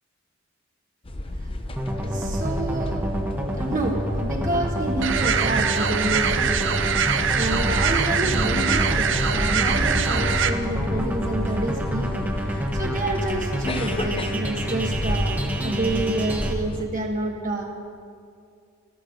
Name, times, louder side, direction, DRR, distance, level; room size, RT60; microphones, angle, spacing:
sound 1, 1.1-16.8, left 1 dB, 25° left, 0.8 m, -31 dB
sound 2, 1.8-16.5, equal, 10° right, 1.3 m, -28 dB
voice 1, 2.0-3.1 3.5-17.7, right 2 dB, 40° right, 0 dB, 1.4 m, -29 dB
sound 3, 5.0-10.5, right 7 dB, 60° right, 0.7 m, -24 dB
14.0 x 13.0 x 6.5 m, 2.3 s
head